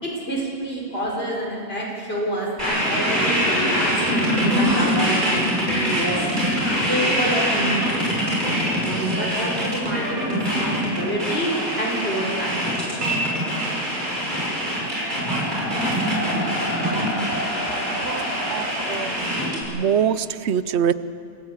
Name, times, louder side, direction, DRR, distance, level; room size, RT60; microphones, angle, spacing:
voice 1, 0.0-6.3 6.9-8.7 9.1-11.5 11.8-12.6, right 1 dB, 65° left, -3 dB, 5.5 m, -28 dB
sound 1, 2.6-19.6, equal, 45° right, 6.3 m, -24 dB
sound 2, 7.9-19.1, equal, 50° left, 4.4 m, -34 dB
voice 2, 17.9-19.2 19.7-20.9, right 8 dB, 80° right, 15 dB, 1.0 m, -24 dB
26.5 x 16.5 x 8.2 m, 2.5 s
omnidirectional pair, 1.1 m